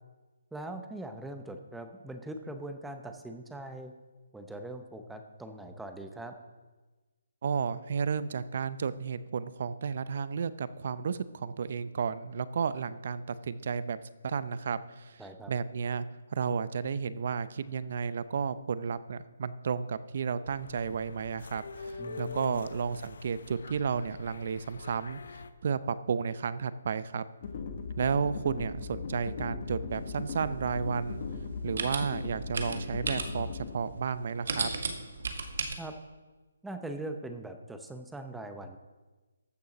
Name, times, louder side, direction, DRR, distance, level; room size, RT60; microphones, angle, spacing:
voice 1, 0.5-3.9 4.3-6.3 15.2-15.5 22.0-22.6 35.8-35.9 36.6-38.8, right 2 dB, 5° right, 6 dB, 0.7 m, -41 dB
voice 2, 7.4-14.0 14.2-15.2 15.5-16.1 16.3-25.2 25.6-27.2 28.0-31.2 31.6-34.7, right 6 dB, 45° right, 16 dB, 0.6 m, -32 dB
sound 1, 20.4-25.5, left 4 dB, 65° left, 0.9 m, -45 dB
sound 2, 27.4-33.7, left 5 dB, 35° left, 1.3 m, -38 dB
sound 3, 29.9-35.7, right 4 dB, 60° right, 1.7 m, -37 dB
14.0 x 6.8 x 6.0 m, 1.2 s
hypercardioid pair, 170°, 0 cm